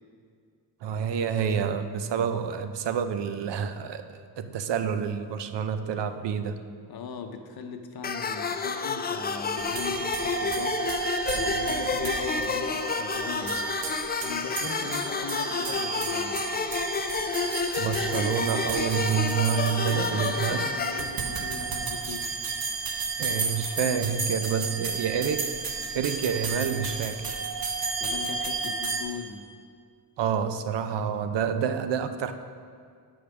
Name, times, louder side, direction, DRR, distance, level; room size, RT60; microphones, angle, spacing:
voice 1, 0.8-4.1 4.4-6.6 17.8-20.6 23.2-25.5 25.9-27.4 30.2-32.3, right 7 dB, 75° right, 9 dB, 0.6 m, -28 dB
voice 2, 6.9-10.8 11.3-13.7 14.2-16.4 19.7-22.3 28.0-29.4, left 5 dB, 55° left, 6 dB, 0.7 m, -39 dB
sound 1, 8.0-21.0, left 5 dB, 25° left, 0.3 m, -30 dB
sound 2, 9.6-29.0, right 4 dB, 55° right, 1.0 m, -32 dB
7.2 x 5.1 x 5.9 m, 2.2 s
cardioid pair, 95°, 43 cm